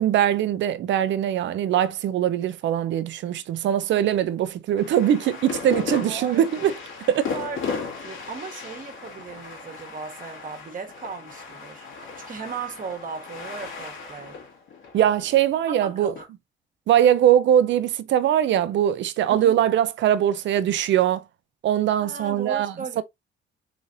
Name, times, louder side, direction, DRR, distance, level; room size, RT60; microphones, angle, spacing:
voice 1, 0.0-6.8 7.1-7.3 14.9-16.1 16.9-21.2 21.6-23.0, right 10 dB, 70° right, 0.5 m, -21 dB
sound 1, 4.8-16.2, left 5 dB, 80° left, 1.8 m, -36 dB
voice 2, 6.0-6.4 7.3-7.6 7.8-14.4 15.7-16.3 19.3-19.5 22.0-23.0, right 5 dB, 45° right, 1.3 m, -36 dB
3.9 x 3.3 x 2.6 m
cardioid pair, 90°, 20 cm